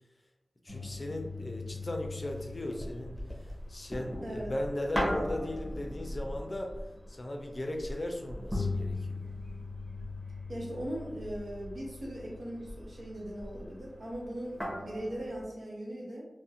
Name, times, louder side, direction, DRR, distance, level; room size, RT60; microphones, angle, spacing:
voice 1, 0.6-3.2 3.7-6.7 7.1-9.2, left 1 dB, 40° left, 3 dB, 0.4 m, -37 dB
sound 1, 0.7-15.4, left 1 dB, ahead, 0.7 m, -39 dB
voice 2, 4.2-4.5 10.5-16.2, right 1 dB, 90° right, -4 dB, 0.7 m, -39 dB
2.5 x 2.0 x 2.7 m, 0.97 s
wide cardioid pair, 60°, 0 cm